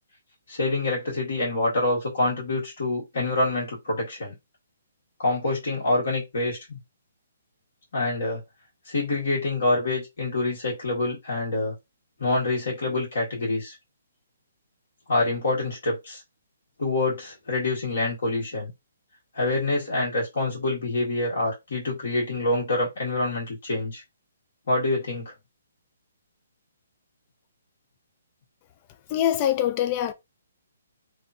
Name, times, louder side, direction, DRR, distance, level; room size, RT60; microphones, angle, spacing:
voice 1, 0.5-4.3 5.2-6.8 7.9-8.4 8.8-11.7 12.2-13.8 15.1-16.2 16.8-18.7 19.3-24.0 24.7-25.3, left 2 dB, 65° left, 1.4 m, -26 dB
voice 2, 29.1-30.1, left 11 dB, 30° left, 0.3 m, -23 dB
2.8 x 2.1 x 2.5 m
figure-of-eight pair, 135°, 0 cm